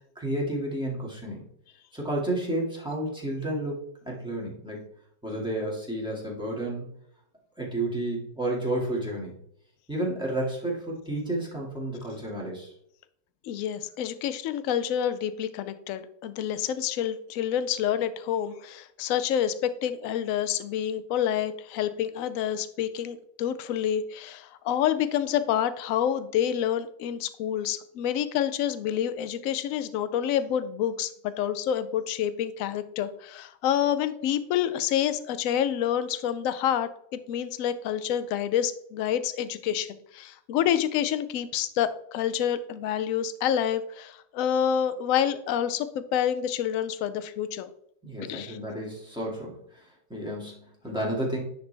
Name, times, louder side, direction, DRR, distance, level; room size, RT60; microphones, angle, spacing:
voice 1, 0.2-1.5 1.9-3.8 4.1-4.9 5.2-6.9 7.6-9.3 9.9-12.7 48.0-51.4, right 1 dB, 5° right, -4 dB, 2.0 m, -31 dB
voice 2, 13.4-31.1 31.4-47.7 48.3-48.6, left 9 dB, 70° left, 13 dB, 0.8 m, -28 dB
10.5 x 4.0 x 3.4 m, 0.71 s
omnidirectional pair, 1.9 m